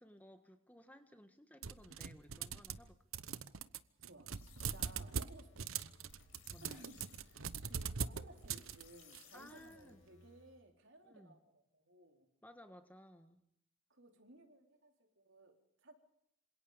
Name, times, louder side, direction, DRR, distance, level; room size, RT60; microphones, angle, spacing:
voice 1, 0.0-3.0 6.5-6.9 9.3-10.0 11.0-11.4 12.4-13.4, equal, 5° left, 8 dB, 1.6 m, -58 dB
sound 1, 1.6-2.9 3.1-9.2, right 6 dB, 80° right, 1.0 m, -42 dB
voice 2, 4.0-6.1 6.6-12.3 13.9-15.9, right 1 dB, 60° right, 4 dB, 4.3 m, -60 dB
sound 2, 4.3-10.6, left 4 dB, 70° left, 6.8 m, -63 dB
27.0 x 26.5 x 5.2 m, 0.72 s
head